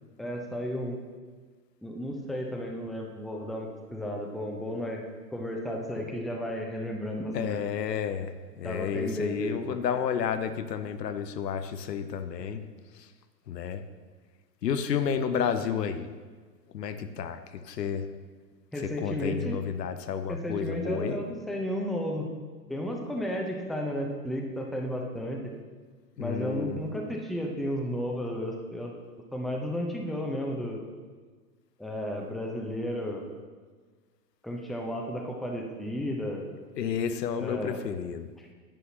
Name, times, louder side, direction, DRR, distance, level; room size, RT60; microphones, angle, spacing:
voice 1, 0.2-1.0 1.8-5.0 5.3-7.6 8.6-9.8 12.4-12.5 18.7-19.6 20.3-22.3 22.7-25.4 26.2-28.9 29.3-30.8 31.8-33.2 34.4-36.5 37.4-37.8 38.4-38.5, equal, ahead, 1 dB, 0.8 m, -33 dB
voice 2, 7.3-8.3 8.6-12.6 13.5-13.8 14.6-16.1 16.7-18.1 19.0-21.2 26.2-26.8 36.8-38.3, left 7 dB, 75° left, 10 dB, 0.8 m, -31 dB
10.5 x 9.3 x 2.8 m, 1.5 s
figure-of-eight pair, 100°, 50 cm